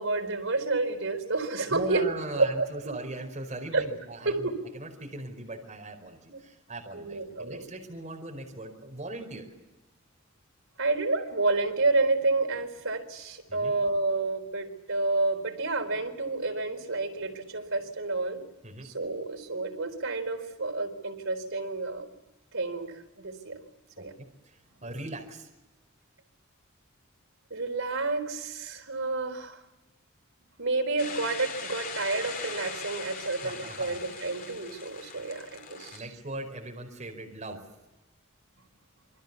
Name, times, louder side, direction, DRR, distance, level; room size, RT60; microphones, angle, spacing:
voice 1, 0.0-2.0 2.3-2.9 3.7-3.8 4.2-4.6 6.3-6.4 6.9-7.7 10.8-18.4 18.8-22.1 22.5-23.6 24.0-24.1 24.8-24.9 27.5-29.6 30.6-36.1, right 3 dB, 75° right, 5 dB, 4.2 m, -30 dB
voice 2, 1.7-9.5 13.5-13.7 18.6-18.9 24.0-25.5 33.4-34.0 35.9-37.6, right 2 dB, 35° right, 3 dB, 4.8 m, -39 dB
sound 1, 31.0-36.0, left 5 dB, 45° left, 3.8 m, -40 dB
28.0 x 24.0 x 7.1 m, 1.1 s
head